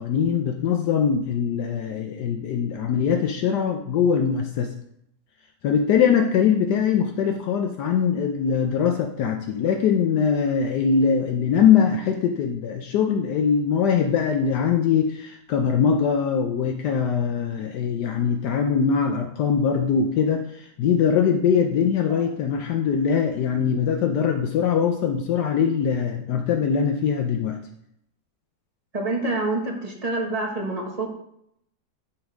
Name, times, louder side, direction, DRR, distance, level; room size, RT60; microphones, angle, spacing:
voice 1, 0.0-4.7 5.6-27.6, left 7 dB, 75° left, 4 dB, 1.2 m, -22 dB
voice 2, 28.9-31.1, right 2 dB, 25° right, 0 dB, 1.3 m, -27 dB
10.5 x 3.9 x 5.0 m, 0.75 s
omnidirectional pair, 1.8 m